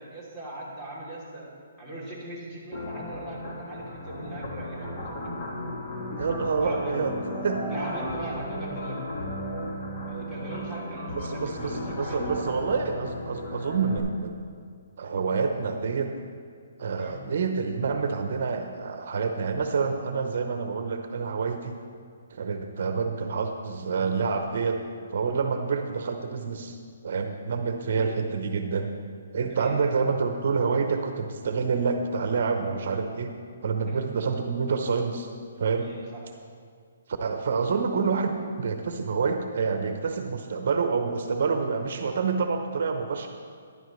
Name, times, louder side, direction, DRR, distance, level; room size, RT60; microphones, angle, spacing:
voice 1, 0.0-1.5 1.8-5.3 6.1-7.0 7.6-9.1 10.0-12.6 17.0-17.1 27.9-28.2 29.5-30.1 33.8-34.0 35.8-36.3, right 1 dB, 15° left, -7 dB, 3.1 m, -40 dB
sound 1, 2.7-14.0, left 1 dB, 40° left, 1.8 m, -35 dB
voice 2, 6.2-7.2 7.4-7.6 11.1-14.4 15.0-16.1 16.8-21.8 22.3-24.8 25.1-26.8 27.0-28.9 29.3-33.3 33.6-35.3 35.6-35.9 37.2-43.3, right 5 dB, 55° right, 6 dB, 0.8 m, -27 dB
14.5 x 11.0 x 3.2 m, 2.1 s
hypercardioid pair, 160°, 0 cm